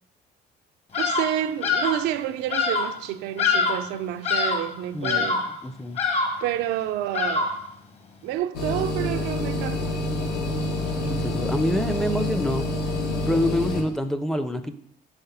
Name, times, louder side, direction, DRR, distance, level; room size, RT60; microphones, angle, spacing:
Bird vocalization bird call bird song, 0.9-1.4 1.6-2.1 2.5-2.9 3.4-3.9 4.2-4.7 5.0-5.6 6.0-6.5 7.1-7.7, left 4 dB, 35° left, 1.0 m, -24 dB
voice 1, 1.0-5.5 6.4-7.5 8.2-10.1, right 12 dB, 90° right, 0.4 m, -29 dB
voice 2, 4.9-5.3 5.6-6.0 11.1-12.6 13.3-14.7, left 1 dB, 5° left, 0.4 m, -26 dB
sound 1, 8.5-13.8, left 1 dB, 85° left, 1.3 m, -27 dB
5.7 x 3.4 x 5.6 m
cardioid pair, 110°, 17 cm